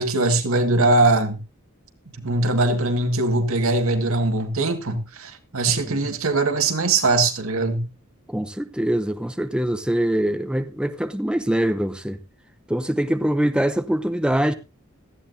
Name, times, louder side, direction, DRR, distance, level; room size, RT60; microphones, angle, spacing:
voice 1, 0.0-1.4 2.2-7.9, right 2 dB, 75° right, 1.9 m, -21 dB
voice 2, 5.7-6.2 8.3-12.2 12.7-14.5, right 1 dB, 5° right, 0.6 m, -23 dB
17.5 x 13.5 x 2.7 m
head